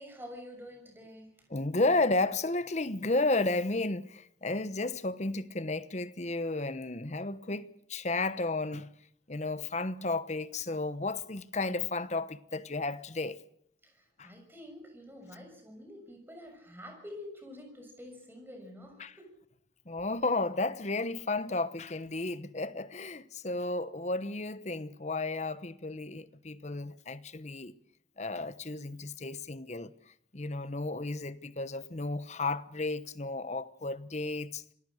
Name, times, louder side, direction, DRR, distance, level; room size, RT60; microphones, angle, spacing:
voice 1, 0.0-1.5 13.8-19.3 20.0-20.1, left 1 dB, 10° right, 6.6 m, -48 dB
voice 2, 1.5-8.9 9.3-13.4 14.2-14.3 19.0-19.1 19.9-27.7 28.2-29.9 30.3-34.6, left 2 dB, 40° left, 1.1 m, -33 dB
26.5 x 20.0 x 6.5 m
head